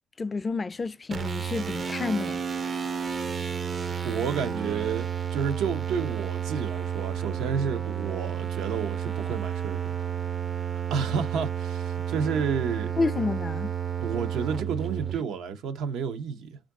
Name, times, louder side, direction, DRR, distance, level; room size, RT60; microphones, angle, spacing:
voice 1, 0.2-2.4 13.0-13.7, left 3 dB, 30° left, 0.3 m, -29 dB
sound 1, 1.1-15.2, right 8 dB, 40° right, 0.5 m, -31 dB
voice 2, 4.0-10.1 10.7-13.0 14.0-16.6, right 6 dB, 85° right, 0.6 m, -31 dB
4.6 x 2.4 x 3.6 m
cardioid pair, 90°, 0 cm